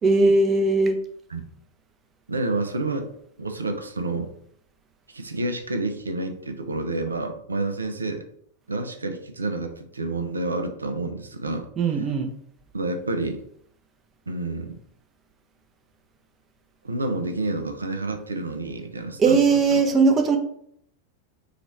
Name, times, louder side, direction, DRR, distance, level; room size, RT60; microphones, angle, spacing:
voice 1, 0.0-1.0 11.8-12.3 19.2-20.4, right 3 dB, 25° right, 4 dB, 0.6 m, -19 dB
voice 2, 2.3-3.1 3.4-4.3 5.1-8.2 8.7-11.7 12.7-13.4 14.3-14.8 16.8-19.8, right 2 dB, 75° right, 6 dB, 0.4 m, -29 dB
3.0 x 2.4 x 4.1 m, 0.70 s
figure-of-eight pair, 90°, 0 cm